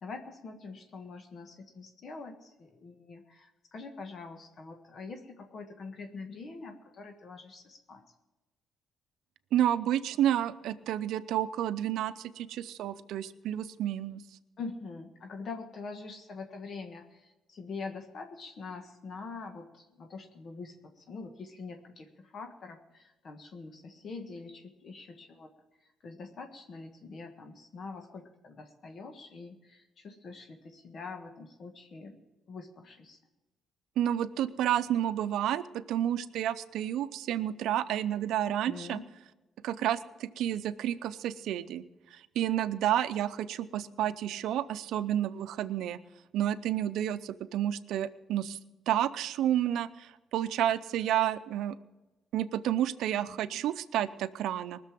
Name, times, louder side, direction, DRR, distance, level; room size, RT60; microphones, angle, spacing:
voice 1, 0.0-8.0 14.6-25.5 26.0-32.2 32.5-33.2 38.5-39.0 53.3-53.6, left 4 dB, 55° left, 4 dB, 1.5 m, -44 dB
voice 2, 9.5-14.2 34.0-39.0 39.6-41.8 42.1-46.0 46.3-48.6 48.9-51.8 52.3-54.8, right 11 dB, 85° right, 12 dB, 0.6 m, -30 dB
19.5 x 6.8 x 7.6 m, 1.1 s
cardioid pair, 90°, 0 cm